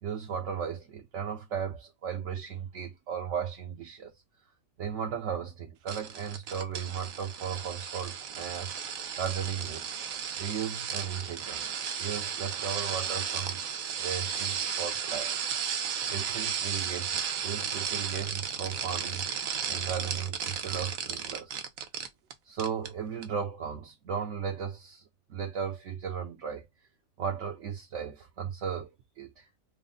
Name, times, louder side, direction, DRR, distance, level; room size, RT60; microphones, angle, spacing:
voice 1, 0.0-4.1 4.8-10.0 10.4-11.7 12.0-13.6 14.0-15.4 16.1-19.3 19.7-21.6 22.5-25.0 25.3-26.7 27.2-28.9 29.2-29.5, right 7 dB, 65° right, 1.0 m, -36 dB
sound 1, 5.9-22.3 22.6-22.9 23.2-23.3, right 7 dB, 90° right, 1.1 m, -34 dB
3.3 x 2.1 x 3.8 m
omnidirectional pair, 1.4 m